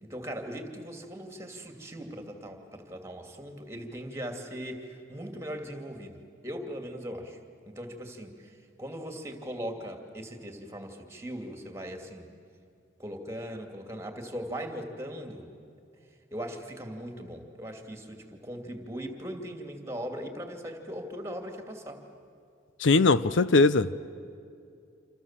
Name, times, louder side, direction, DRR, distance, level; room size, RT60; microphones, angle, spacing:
voice 1, 0.0-7.4 7.6-12.3 13.0-15.5 16.3-22.0, equal, 15° right, 4 dB, 2.7 m, -39 dB
voice 2, 22.8-24.0, left 3 dB, 65° left, 15 dB, 0.6 m, -21 dB
27.5 x 27.0 x 7.5 m, 2.5 s
head